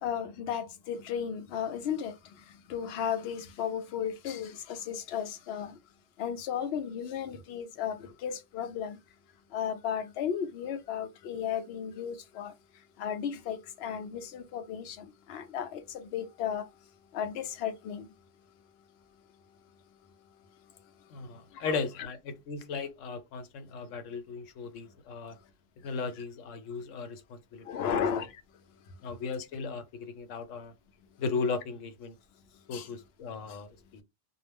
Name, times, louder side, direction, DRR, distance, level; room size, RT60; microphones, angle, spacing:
voice 1, 0.0-2.1 2.7-5.7 6.2-9.0 9.5-12.5 13.0-16.7 17.1-18.1 21.6-21.8 27.7-28.3 32.7-32.9 33.5-33.6, left 8 dB, 65° left, 0.7 m, -34 dB
voice 2, 21.1-25.4 25.8-28.0 29.0-30.7 31.2-32.1 32.7-34.0, left 4 dB, 90° left, 1.0 m, -36 dB
2.3 x 2.0 x 3.4 m
omnidirectional pair, 1.3 m